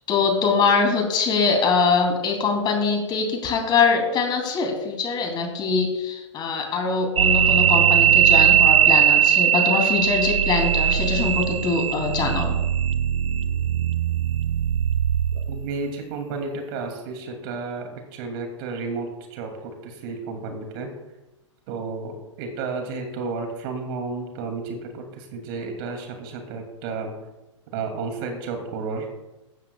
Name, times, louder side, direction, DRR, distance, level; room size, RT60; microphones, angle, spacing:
voice 1, 0.1-12.6, left 4 dB, 30° left, 2 dB, 3.1 m, -23 dB
sound 1, 7.2-15.7, right 9 dB, 85° right, 0.6 m, -19 dB
voice 2, 15.5-20.9 21.7-27.1 27.7-29.1, right 4 dB, 50° right, 4 dB, 2.7 m, -32 dB
16.0 x 12.5 x 2.4 m, 1.0 s
hypercardioid pair, 110°, 16 cm